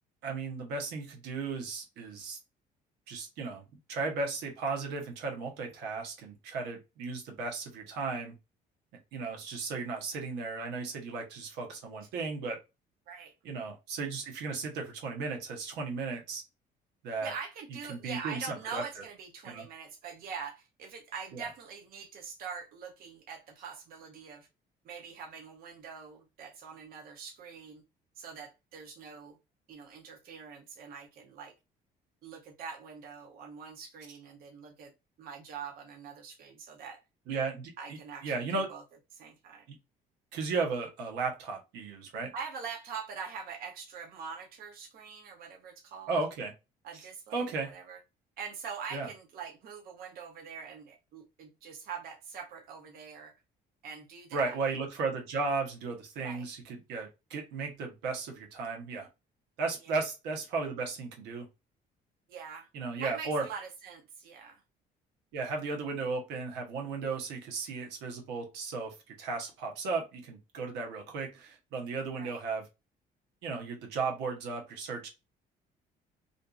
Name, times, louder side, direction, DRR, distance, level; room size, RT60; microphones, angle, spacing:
voice 1, 0.2-2.4 3.1-3.6 3.9-8.3 9.1-12.6 13.4-16.4 17.0-17.3 17.9-18.8 19.4-19.6 21.3-21.4 37.3-37.7 38.2-38.7 40.3-42.3 46.1-46.5 47.3-47.7 48.9-49.1 54.3-59.1 59.6-61.5 62.7-63.4 65.3-72.6 73.4-75.1, right 4 dB, 90° right, 0.9 m, -35 dB
voice 2, 17.2-24.5 24.8-27.8 28.2-29.4 29.7-31.5 32.2-34.9 35.2-37.0 37.8-38.8 39.1-39.7 42.3-46.2 46.8-48.0 48.4-53.3 53.8-54.6 56.2-56.5 59.8-60.0 62.3-62.7 63.0-64.6 72.2-72.4, right 6 dB, 60° right, 0.6 m, -44 dB
2.6 x 2.5 x 2.3 m
cardioid pair, 110°, 17 cm